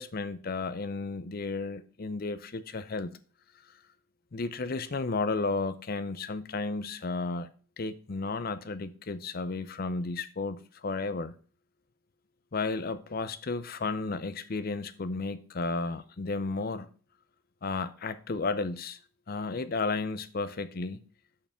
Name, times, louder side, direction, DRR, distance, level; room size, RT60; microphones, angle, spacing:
voice 1, 0.0-3.1 4.3-7.5 7.8-11.3 12.5-16.9 17.6-19.0 19.3-21.0, left 3 dB, 45° left, 0.5 m, -33 dB
6.7 x 5.8 x 5.6 m
head